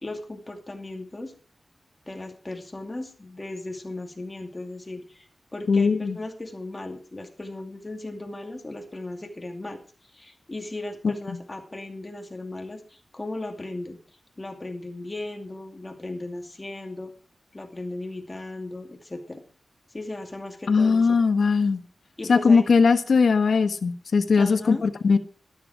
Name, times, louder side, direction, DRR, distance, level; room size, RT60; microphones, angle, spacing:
voice 1, 0.0-1.3 2.1-9.8 10.1-14.0 14.4-17.1 17.5-19.4 19.9-21.2 22.2-22.6 24.4-24.8, left 2 dB, 25° left, 5 dB, 2.4 m, -36 dB
voice 2, 5.7-6.2 11.3-11.4 20.7-21.8 22.3-25.2, left 5 dB, 75° left, 9 dB, 1.3 m, -20 dB
13.0 x 13.0 x 4.7 m, 0.39 s
wide cardioid pair, 125°, 0 cm